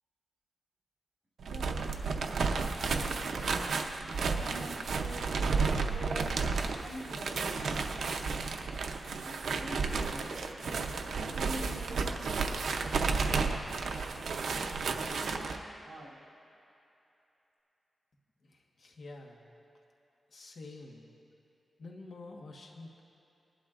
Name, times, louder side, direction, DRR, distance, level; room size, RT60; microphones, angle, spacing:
voice 1, 1.4-2.3 2.8-3.2 4.0-6.4 6.8-8.1 9.2-10.5 11.2-12.7 13.2-13.5 14.9-16.1, right 1 dB, 60° right, -6 dB, 3.0 m, -46 dB
sound 1, 1.4-15.6, right 4 dB, 85° right, 0.6 m, -32 dB
voice 2, 18.4-19.4 20.3-21.1 21.8-23.0, left 2 dB, 65° left, 0 dB, 1.4 m, -48 dB
20.5 x 11.5 x 2.5 m, 2.9 s
wide cardioid pair, 115°, 0 cm